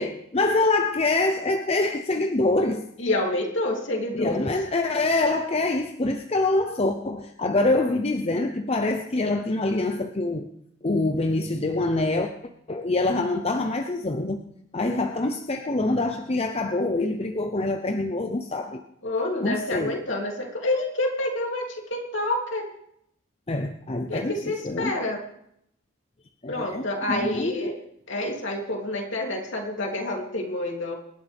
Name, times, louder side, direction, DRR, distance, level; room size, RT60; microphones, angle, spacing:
voice 1, 0.0-2.8 4.1-10.5 10.8-12.3 12.7-14.4 14.7-18.8 19.4-20.0 23.5-24.9 26.4-27.7, left 2 dB, 30° left, 5 dB, 0.7 m, -25 dB
voice 2, 3.0-4.5 19.0-22.7 24.1-25.2 26.5-27.7 28.1-30.9, left 1 dB, 65° left, 0 dB, 3.1 m, -28 dB
27.0 x 11.5 x 3.5 m, 0.74 s
head